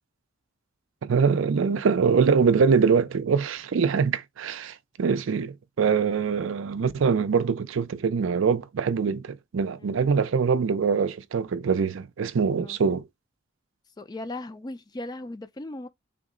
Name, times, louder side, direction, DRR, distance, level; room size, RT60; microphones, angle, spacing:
voice 1, 1.0-13.0, right 5 dB, 75° right, 0.4 m, -23 dB
voice 2, 14.0-15.9, left 2 dB, 20° left, 0.4 m, -37 dB
3.5 x 2.0 x 3.6 m
head